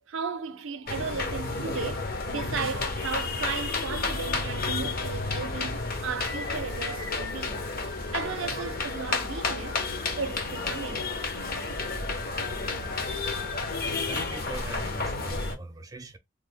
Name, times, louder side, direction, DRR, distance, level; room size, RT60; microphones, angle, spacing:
voice 1, 0.1-7.6 8.1-11.2, right 5 dB, 70° right, 0.5 m, -35 dB
sound 1, 0.9-15.6, left 3 dB, 45° left, 0.7 m, -31 dB
voice 2, 14.1-16.2, right 2 dB, 15° right, 0.3 m, -41 dB
3.2 x 2.1 x 3.4 m
head